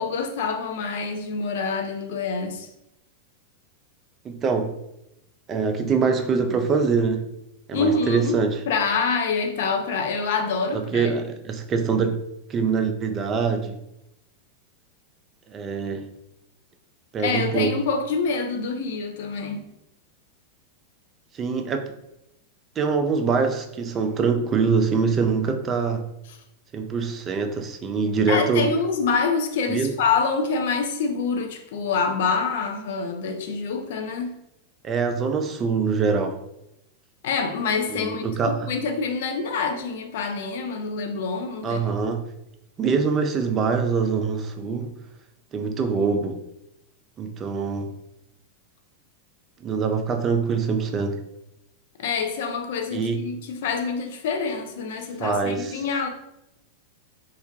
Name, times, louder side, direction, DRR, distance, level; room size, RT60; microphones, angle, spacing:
voice 1, 0.0-2.7 7.7-8.4 8.7-11.1 17.2-19.7 28.3-34.4 37.2-41.9 52.0-56.1, left 4 dB, 55° left, 0.4 m, -26 dB
voice 2, 4.2-4.7 5.5-7.3 7.7-8.6 10.7-12.2 12.5-13.8 15.5-16.1 17.1-17.8 21.3-21.9 22.8-26.1 26.7-28.7 29.7-29.9 34.8-36.4 37.9-38.7 41.6-42.2 42.8-44.9 45.5-46.4 47.2-47.9 49.6-51.2 52.9-53.2 55.2-55.8, right 5 dB, 25° right, 0.3 m, -24 dB
2.3 x 2.1 x 2.6 m
figure-of-eight pair, 90°, 0 cm